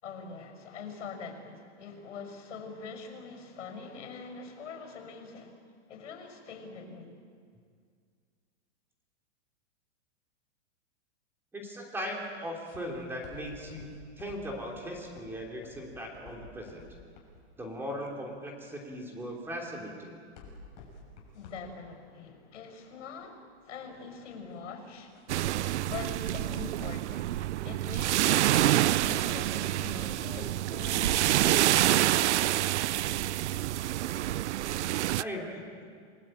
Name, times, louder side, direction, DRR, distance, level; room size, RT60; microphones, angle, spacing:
voice 1, 0.0-5.6 5.9-7.1 21.3-25.2 25.8-27.3 27.6-32.4, left 5 dB, 85° left, 6 dB, 6.0 m, -43 dB
voice 2, 11.5-16.8 17.6-20.2 35.2-35.7, equal, 5° right, 0 dB, 2.9 m, -38 dB
sound 1, 12.7-31.6, left 4 dB, 40° left, 6.7 m, -53 dB
sound 2, 25.3-35.2, right 14 dB, 75° right, 0.6 m, -27 dB
29.0 x 19.5 x 8.9 m, 2.1 s
supercardioid pair, 170°, 35 cm